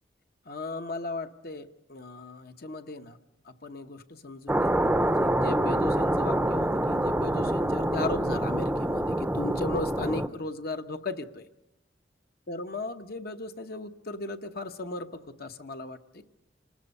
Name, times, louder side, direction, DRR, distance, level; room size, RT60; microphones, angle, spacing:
voice 1, 0.4-3.2 3.4-11.4 12.5-16.2, left 2 dB, 60° left, 7 dB, 1.1 m, -37 dB
sound 1, 4.5-10.3, right 1 dB, 10° right, 0.7 m, -26 dB
28.0 x 20.0 x 5.5 m, 0.92 s
head